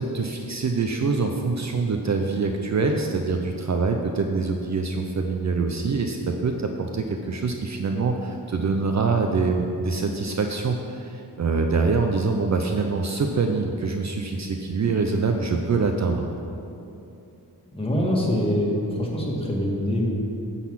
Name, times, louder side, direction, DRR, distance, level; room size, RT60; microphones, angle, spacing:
voice 1, 0.0-16.3, right 4 dB, 45° right, 3 dB, 0.6 m, -25 dB
voice 2, 17.6-20.1, left 1 dB, 15° left, -4 dB, 1.7 m, -24 dB
10.0 x 4.1 x 7.3 m, 2.7 s
wide cardioid pair, 105°, 39 cm